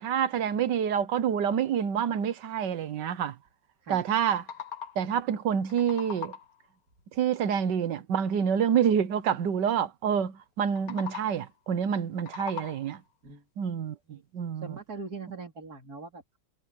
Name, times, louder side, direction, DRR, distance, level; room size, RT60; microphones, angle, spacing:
voice 1, 0.0-3.3 3.9-4.4 4.9-6.3 7.2-13.0 13.6-14.8, right 8 dB, 75° right, 1.7 m, -27 dB
sound 1, 4.1-5.2 5.5-6.7 10.6-11.5 12.0-13.1, left 7 dB, 55° left, 1.6 m, -41 dB
voice 2, 14.6-16.4, right 4 dB, 55° right, 3.7 m, -41 dB
omnidirectional pair, 1.9 m